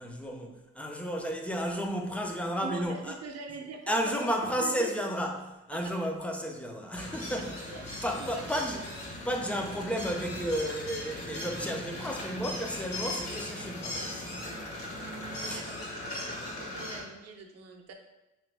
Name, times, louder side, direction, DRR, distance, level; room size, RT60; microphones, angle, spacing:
voice 1, 0.0-3.2 3.9-7.6 8.0-8.8 9.2-14.6 15.4-15.6, equal, 5° left, 2 dB, 0.5 m, -33 dB
voice 2, 2.6-4.9 5.7-6.1 7.7-7.9 8.2-8.4 8.7-8.9 15.1-17.9, right 4 dB, 55° right, 4 dB, 0.6 m, -44 dB
sound 1, 6.9-17.0, left 1 dB, 50° left, 1.3 m, -39 dB
3.4 x 3.0 x 3.3 m, 0.99 s
cardioid pair, 90°, 30 cm